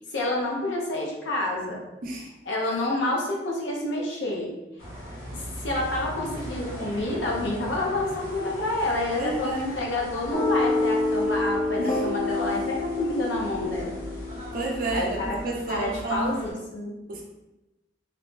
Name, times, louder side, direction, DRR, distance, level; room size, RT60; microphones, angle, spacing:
voice 1, 0.0-1.8 2.5-4.5 5.3-14.0 14.9-15.4 15.7-17.0, left 1 dB, 75° left, -2 dB, 0.7 m, -28 dB
sound 1, 4.8-16.5, equal, 50° left, 1.2 m, -39 dB
voice 2, 9.2-9.6 11.8-12.0 14.5-16.5 17.1-17.2, right 2 dB, 50° right, -1 dB, 0.5 m, -30 dB
sound 2, 10.3-15.8, left 2 dB, 15° left, 0.4 m, -28 dB
2.6 x 2.1 x 3.0 m, 1.0 s
head